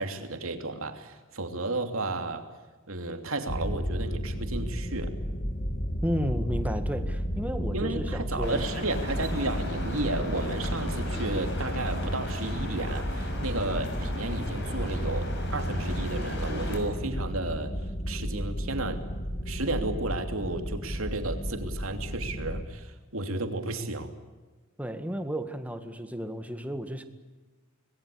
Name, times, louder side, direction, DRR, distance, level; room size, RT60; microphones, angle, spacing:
voice 1, 0.0-2.5 2.9-5.2 7.7-17.7 18.1-19.1 19.5-24.1, right 2 dB, 75° right, 6 dB, 3.0 m, -33 dB
sound 1, 3.5-22.6, equal, 35° left, 2.0 m, -33 dB
voice 2, 6.0-8.6 24.8-27.0, equal, 5° right, 8 dB, 1.8 m, -33 dB
sound 2, 8.4-16.8, left 1 dB, 60° left, 6.2 m, -37 dB
26.5 x 20.5 x 8.6 m, 1.2 s
head